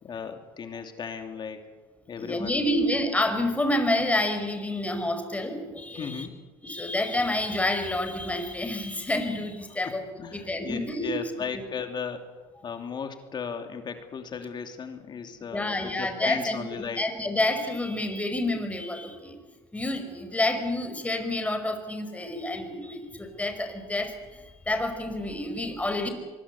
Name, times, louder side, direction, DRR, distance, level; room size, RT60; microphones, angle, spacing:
voice 1, 0.0-1.7 2.1-2.8 5.9-6.5 9.8-17.0, left 6 dB, 35° left, 6 dB, 2.9 m, -36 dB
voice 2, 2.2-6.3 6.6-10.0 10.3-11.1 15.5-16.6 17.0-19.4 19.7-26.1, left 1 dB, 10° left, 7 dB, 5.1 m, -28 dB
24.5 x 22.0 x 8.4 m, 1.3 s
supercardioid pair, 100°, 12 cm